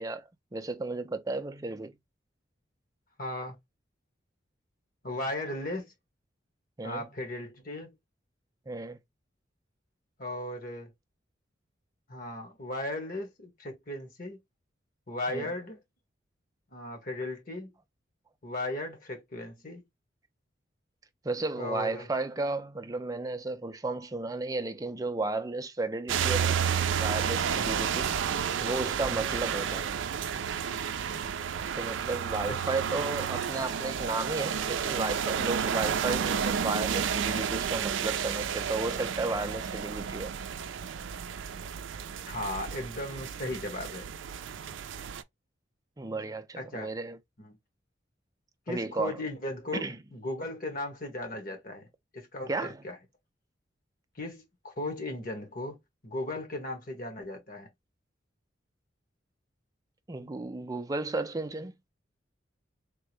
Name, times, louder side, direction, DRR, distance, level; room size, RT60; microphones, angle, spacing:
voice 1, 0.0-1.9 6.8-7.1 8.7-9.0 15.3-15.5 21.2-26.6 27.0-28.1 28.6-29.9 31.8-40.3 46.0-47.2 48.7-49.2 49.7-50.0 52.5-52.8 60.1-61.8, right 3 dB, 20° right, 0.4 m, -33 dB
voice 2, 3.2-3.6 5.0-5.9 6.8-7.9 10.2-10.9 12.1-14.4 15.1-15.8 16.7-17.7 18.4-19.8 21.6-22.1 27.5-27.6 29.0-29.1 32.5-32.6 42.3-44.1 46.6-46.9 47.4-47.6 48.7-51.9 52.1-53.0 54.1-55.8 56.0-57.7, left 1 dB, 50° left, 1.2 m, -36 dB
sound 1, 26.1-45.2, right 7 dB, 80° right, 0.4 m, -31 dB
3.6 x 2.1 x 3.1 m
head